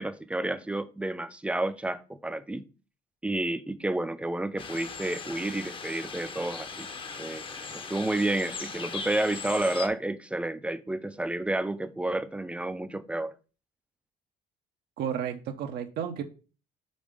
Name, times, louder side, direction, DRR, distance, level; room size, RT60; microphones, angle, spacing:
voice 1, 0.0-2.7 3.2-6.9 7.2-7.4 7.7-13.3, right 1 dB, 5° right, 0.5 m, -30 dB
sound 1, 4.6-9.9, left 4 dB, 30° left, 0.8 m, -39 dB
voice 2, 15.0-16.2, right 8 dB, 70° right, 0.8 m, -32 dB
5.3 x 4.3 x 5.0 m
cardioid pair, 110°, 17 cm